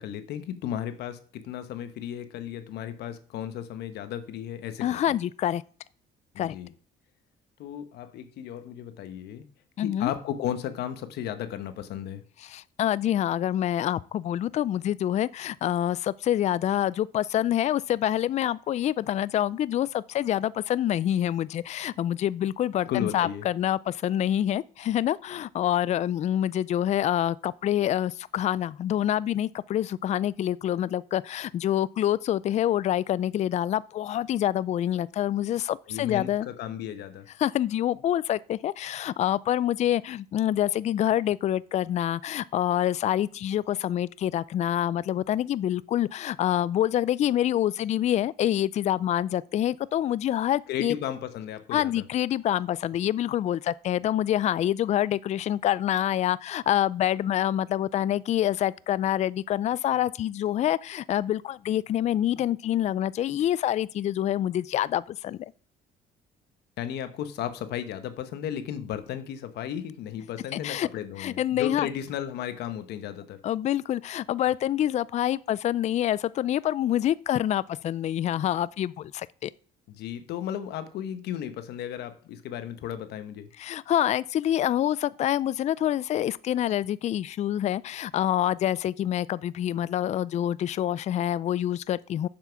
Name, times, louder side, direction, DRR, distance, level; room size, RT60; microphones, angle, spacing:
voice 1, 0.0-5.0 6.3-6.7 7.6-9.5 9.8-12.2 22.9-23.5 35.9-37.3 50.7-52.0 66.8-73.4 79.9-83.5, left 10 dB, 75° left, 1.1 m, -34 dB
voice 2, 4.8-5.6 6.4-6.5 9.8-10.1 12.4-36.5 37.4-50.9 51.7-65.4 70.5-70.9 71.2-71.9 73.4-79.5 83.6-92.3, left 11 dB, 40° left, 0.4 m, -26 dB
7.4 x 7.2 x 5.8 m
cardioid pair, 110°, 17 cm